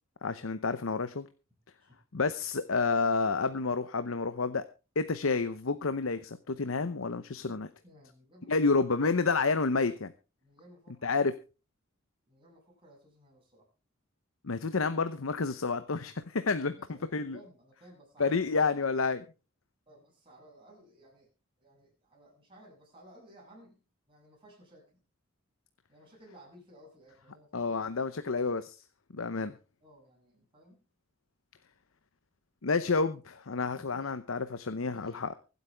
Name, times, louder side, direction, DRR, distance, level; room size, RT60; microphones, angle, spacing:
voice 1, 0.2-1.2 2.1-4.6 5.0-7.7 8.5-10.1 11.0-11.3 14.4-16.8 17.1-17.4 18.2-19.2 27.5-28.8 29.1-29.5 32.6-35.3, left 4 dB, 85° left, 11 dB, 0.8 m, -29 dB
voice 2, 7.8-8.5 9.0-9.1 10.4-11.2 12.3-13.7 16.8-18.6 19.9-21.3 21.6-25.0 25.9-28.2 29.8-30.8 33.9-34.1 34.9-35.4, right 1 dB, 25° right, -4 dB, 7.5 m, -57 dB
24.5 x 8.3 x 3.4 m, 0.33 s
head